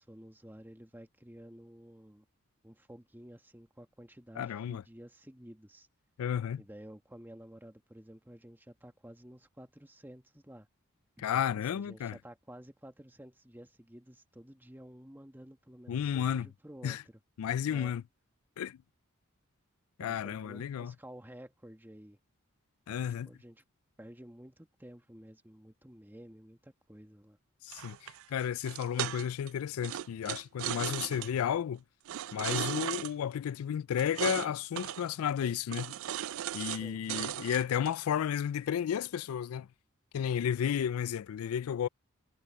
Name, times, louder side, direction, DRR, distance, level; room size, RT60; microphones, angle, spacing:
voice 1, 0.0-2.2 2.6-5.9 6.6-10.7 11.2-11.3 11.7-17.2 17.7-17.9 20.0-22.2 22.9-23.6 24.0-27.4 36.8-37.0, equal, 10° right, 1.4 m, -52 dB
voice 2, 4.4-4.8 6.2-6.6 11.2-12.2 15.9-16.5 16.8-17.0 17.4-18.0 18.6-18.8 20.0-20.9 22.9-23.3 27.6-31.8 32.3-36.0 36.5-39.7 40.1-41.9, left 9 dB, 85° left, 0.3 m, -32 dB
sound 1, 27.7-29.5 29.8-31.3 32.1-33.1 34.0-34.5 34.8-35.1 35.7-36.8 37.1-37.9, right 11 dB, 70° right, 0.4 m, -36 dB
head